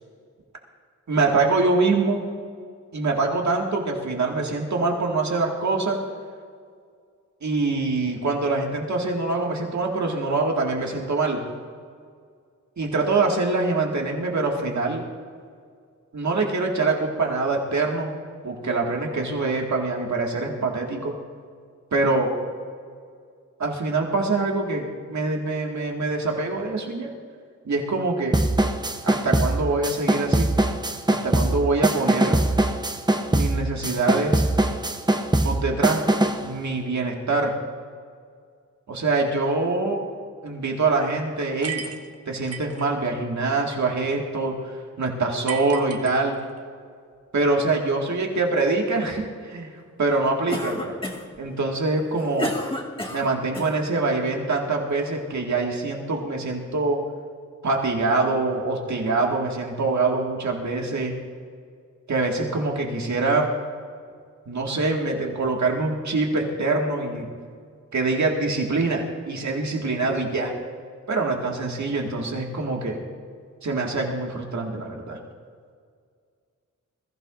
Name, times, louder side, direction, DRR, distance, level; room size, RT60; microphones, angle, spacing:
voice 1, 1.1-2.2 2.9-6.0 7.4-11.4 12.8-15.0 16.1-18.1 18.4-21.2 21.9-22.3 23.6-27.1 27.6-28.4 29.0-30.5 31.1-32.4 33.3-34.4 35.4-36.0 36.4-37.5 38.9-40.0 40.4-41.8 42.3-46.4 47.3-49.7 50.0-50.9 51.4-52.6 53.1-57.0 57.6-61.2 62.1-63.5 64.5-67.3 67.9-70.5 71.1-73.0 73.6-75.2, right 3 dB, 70° right, 0 dB, 2.0 m, -24 dB
sound 1, 28.3-36.5, right 1 dB, 15° right, 0.8 m, -22 dB
sound 2, 41.6-42.9 45.5-46.6, right 6 dB, 55° right, 1.1 m, -34 dB
Cough, 50.5-51.4 52.0-53.8, left 1 dB, 20° left, 1.8 m, -31 dB
21.0 x 15.0 x 2.6 m, 2.1 s
wide cardioid pair, 95°, 30 cm